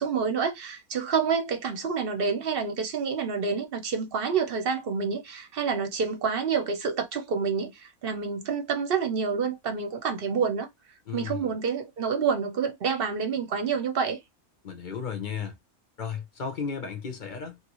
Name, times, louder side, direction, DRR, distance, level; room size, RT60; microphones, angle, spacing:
voice 1, 0.0-10.7 11.1-14.2, right 6 dB, 50° right, 0.8 m, -28 dB
voice 2, 11.1-11.5 14.6-15.6 16.0-17.6, left 6 dB, 45° left, 0.6 m, -34 dB
3.2 x 2.5 x 3.0 m
omnidirectional pair, 1.6 m